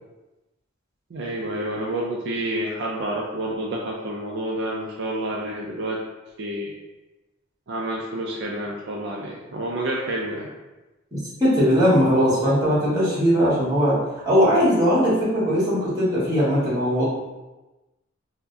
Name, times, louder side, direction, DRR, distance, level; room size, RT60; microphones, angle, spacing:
voice 1, 1.1-6.0 6.4-6.7 7.7-10.5, right 1 dB, 60° right, -3 dB, 0.4 m, -29 dB
voice 2, 11.4-14.0 14.2-17.0, equal, 20° right, -8 dB, 1.4 m, -19 dB
4.5 x 2.1 x 2.7 m, 1.1 s
head